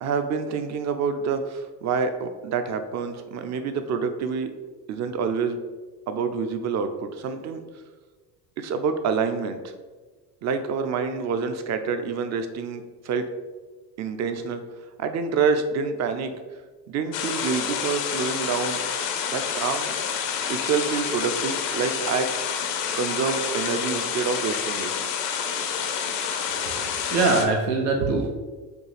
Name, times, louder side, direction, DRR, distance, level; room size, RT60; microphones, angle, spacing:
voice 1, 0.0-4.5 4.9-5.6 6.1-7.6 8.6-9.6 10.4-13.3 14.0-14.6 15.0-16.3 16.9-18.8 19.3-19.9 20.5-22.3 22.9-25.1, right 5 dB, 35° right, 8 dB, 0.4 m, -27 dB
sound 1, 17.1-27.5, left 7 dB, 75° left, 0.6 m, -28 dB
voice 2, 26.6-28.3, right 3 dB, 85° right, 1 dB, 0.6 m, -23 dB
4.4 x 2.4 x 3.2 m, 1.3 s
hypercardioid pair, 65°, 48 cm